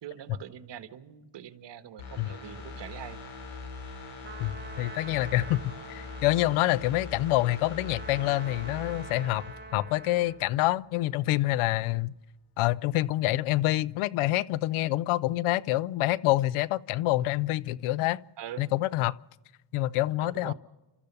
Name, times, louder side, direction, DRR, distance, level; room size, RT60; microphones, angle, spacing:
voice 1, 0.0-3.2 18.4-18.7 20.2-20.5, right 10 dB, 60° right, 1.5 m, -43 dB
sound 1, 2.0-10.7 11.0-11.1, left 3 dB, 70° left, 5.3 m, -42 dB
Trumpet, 4.2-10.5, right 4 dB, 25° right, 1.7 m, -47 dB
voice 2, 4.4-9.4 9.7-12.1 12.6-18.2 18.6-19.1 19.7-20.5, left 16 dB, 85° left, 0.6 m, -27 dB
29.5 x 13.5 x 6.8 m
cardioid pair, 80°, 49 cm